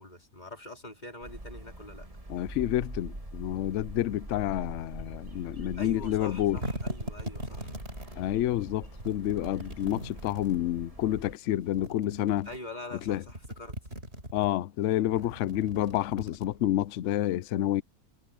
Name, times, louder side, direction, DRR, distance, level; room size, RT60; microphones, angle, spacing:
voice 1, 0.0-2.1 5.8-7.7 12.5-13.8, left 2 dB, 25° left, 3.6 m, -44 dB
sound 1, 1.2-11.4, right 1 dB, 20° right, 2.5 m, -44 dB
voice 2, 2.3-6.6 8.2-12.5 13.1-13.2 14.3-17.8, left 13 dB, 65° left, 0.7 m, -29 dB
sound 2, 6.3-8.2 9.0-10.6 11.5-12.6 13.0-14.5 15.0-16.8, equal, 40° right, 5.5 m, -40 dB
omnidirectional pair, 1.7 m